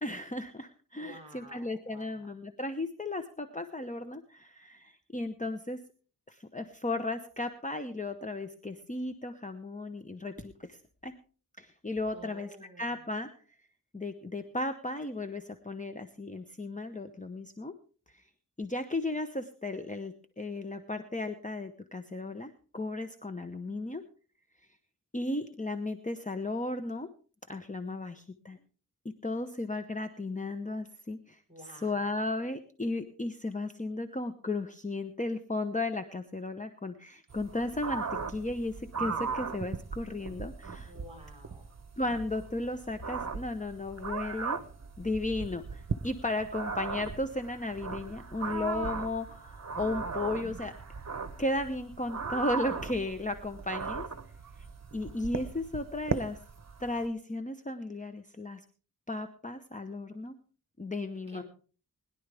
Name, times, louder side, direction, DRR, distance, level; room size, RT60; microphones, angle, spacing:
voice 1, 0.0-5.8 6.3-11.1 11.6-13.3 13.9-17.7 18.1-18.2 18.6-24.0 25.1-27.1 27.5-28.6 29.2-40.9 42.0-44.6 45.0-50.7 51.4-54.0 54.9-56.4 56.8-58.6 59.1-60.3 60.8-61.4, left 2 dB, 20° left, 8 dB, 0.9 m, -35 dB
voice 2, 1.0-2.3 12.1-13.0 31.5-32.2 40.8-41.6 61.3-61.4, equal, 15° right, 4 dB, 4.2 m, -51 dB
sound 1, 37.3-57.1, right 5 dB, 50° right, 1.0 m, -38 dB
21.0 x 11.0 x 3.4 m, 0.40 s
wide cardioid pair, 80°, 35 cm